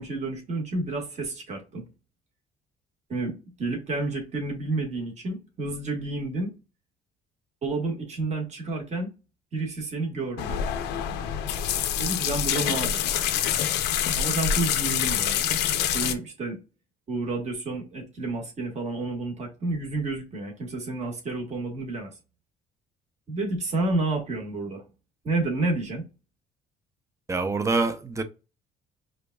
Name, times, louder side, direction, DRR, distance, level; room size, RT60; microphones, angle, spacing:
voice 1, 0.0-1.8 3.1-6.5 7.6-9.1 9.5-10.6 12.0-13.1 14.2-15.5 15.9-16.6 17.1-22.1 23.3-24.8 25.2-26.0, right 2 dB, 40° right, 1.7 m, -30 dB
sound 1, 10.4-16.1, left 9 dB, 90° left, 0.6 m, -26 dB
voice 2, 27.3-28.2, right 3 dB, 15° right, 0.6 m, -25 dB
5.0 x 2.6 x 2.3 m
cardioid pair, 110°, 17 cm